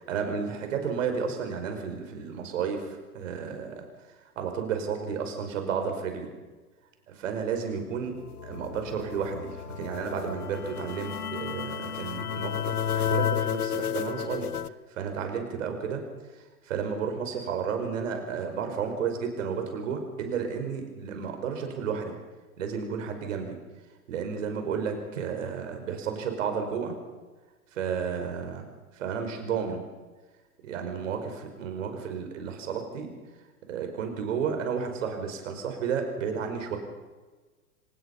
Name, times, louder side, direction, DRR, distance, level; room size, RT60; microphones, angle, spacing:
voice 1, 0.1-3.9 4.4-6.3 7.1-8.2 8.4-14.5 14.9-16.0 16.3-22.1 22.6-23.6 24.1-27.0 27.7-28.7 28.9-29.8 30.6-31.2 31.6-33.1 33.7-36.8, right 6 dB, 55° right, 5 dB, 5.4 m, -32 dB
sound 1, 8.2-14.7, left 9 dB, 80° left, 1.0 m, -32 dB
25.0 x 19.5 x 5.5 m, 1.3 s
figure-of-eight pair, 105°, 45 cm